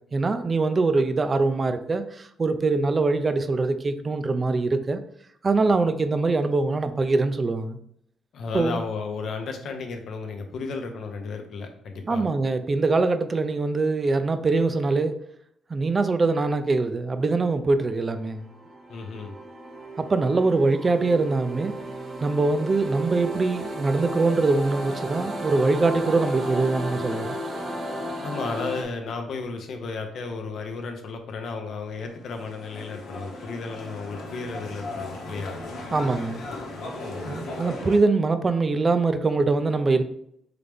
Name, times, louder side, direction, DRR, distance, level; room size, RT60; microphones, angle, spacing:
voice 1, 0.1-5.0 5.4-7.8 8.5-8.8 12.1-15.1 15.7-18.5 20.0-21.7 22.2-27.4 35.9-36.4 37.2-40.0, right 3 dB, 30° right, 0.4 m, -23 dB
voice 2, 8.3-12.3 18.9-19.4 28.2-35.6 37.0-37.4, left 4 dB, 65° left, 0.7 m, -33 dB
sound 1, 18.1-28.8, right 1 dB, 55° right, 1.1 m, -34 dB
sound 2, 31.9-38.0, left 2 dB, 85° left, 1.0 m, -37 dB
3.9 x 3.3 x 3.4 m
cardioid pair, 90°, 0 cm